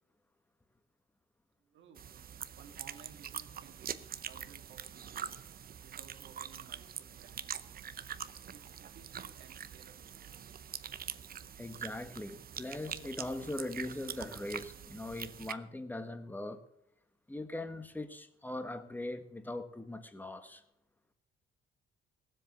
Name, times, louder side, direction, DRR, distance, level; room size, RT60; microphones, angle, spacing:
voice 1, 1.6-2.1 2.6-5.3 5.8-7.8 8.5-10.2 17.3-17.4, right 7 dB, 70° right, 2.0 m, -58 dB
sound 1, 2.0-15.5, right 8 dB, 50° right, 0.7 m, -44 dB
voice 2, 11.6-16.6 17.3-20.6, left 2 dB, 10° left, 1.3 m, -41 dB
16.0 x 7.7 x 7.0 m
cardioid pair, 90°, 20 cm